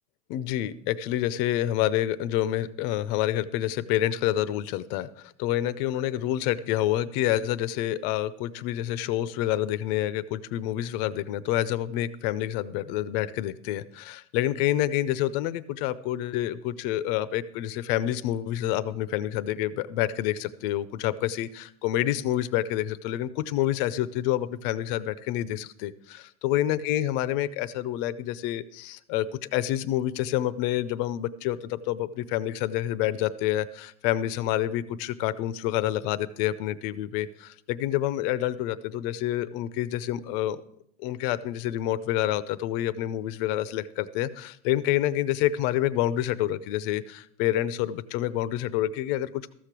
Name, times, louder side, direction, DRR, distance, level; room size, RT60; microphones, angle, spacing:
voice 1, 0.3-29.3 29.5-40.6 41.0-49.5, left 13 dB, 45° left, 16 dB, 0.5 m, -28 dB
14.0 x 6.7 x 6.0 m, 0.72 s
supercardioid pair, 150°, 42 cm